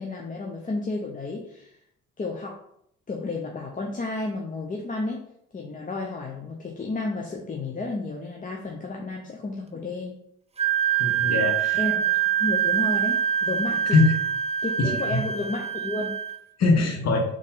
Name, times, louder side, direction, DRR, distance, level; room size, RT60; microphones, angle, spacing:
voice 1, 0.0-1.8 2.2-2.6 3.1-5.3 5.5-10.2 11.8-14.0 14.6-16.2, left 3 dB, 25° left, 0 dB, 0.6 m, -32 dB
Wind instrument woodwind instrument, 10.6-16.4, right 9 dB, 20° right, 0.4 m, -25 dB
voice 2, 11.0-11.8 13.9-14.1 14.8-15.2 16.6-17.2, left 3 dB, 60° left, 2 dB, 1.1 m, -22 dB
4.2 x 3.1 x 3.8 m, 0.72 s
cardioid pair, 90°, 30 cm